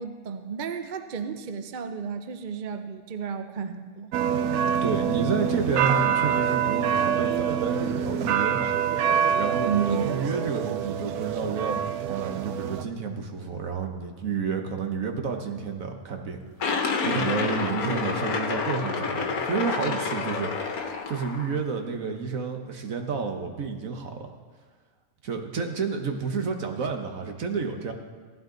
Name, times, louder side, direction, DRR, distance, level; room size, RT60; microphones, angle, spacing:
voice 1, 0.0-4.1 9.6-10.2, right 7 dB, 50° right, 8 dB, 0.6 m, -32 dB
sound 1, 4.1-12.8, right 8 dB, 90° right, 1.1 m, -26 dB
voice 2, 4.8-8.7 9.4-16.4 16.8-24.3 25.2-27.9, right 5 dB, 65° right, 4 dB, 1.5 m, -30 dB
sound 2, 16.6-21.6, left 5 dB, 75° left, 1.5 m, -28 dB
15.5 x 12.0 x 3.9 m, 1.5 s
omnidirectional pair, 1.5 m